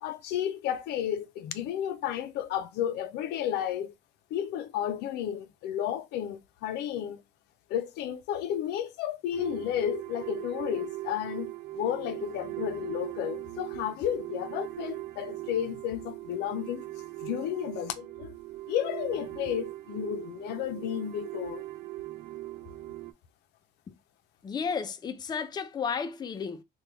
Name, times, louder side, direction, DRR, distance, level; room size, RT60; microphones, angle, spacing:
voice 1, 0.0-3.9 4.3-7.2 7.7-16.9 17.2-18.3 18.7-21.6, left 10 dB, 85° left, 0.5 m, -32 dB
sound 1, 9.3-23.1, right 17 dB, 75° right, 0.4 m, -40 dB
voice 2, 24.4-26.6, left 6 dB, 25° left, 0.4 m, -33 dB
2.9 x 2.2 x 3.3 m
cardioid pair, 110°, 17 cm